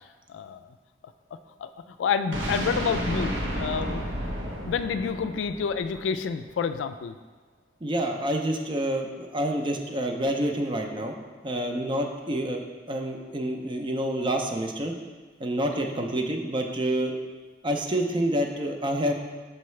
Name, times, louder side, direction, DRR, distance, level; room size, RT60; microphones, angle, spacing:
voice 1, 0.3-0.7 1.6-1.7 2.0-4.0 4.6-7.2 15.6-15.9, left 6 dB, 85° left, 11 dB, 0.3 m, -29 dB
sound 1, 2.3-6.3, equal, 85° right, 0.9 m, -31 dB
voice 2, 7.8-11.1 11.4-12.6 12.9-14.9 15.4-17.1 17.6-19.1, right 1 dB, 25° right, 3 dB, 0.5 m, -28 dB
5.6 x 5.5 x 3.1 m, 1.4 s
head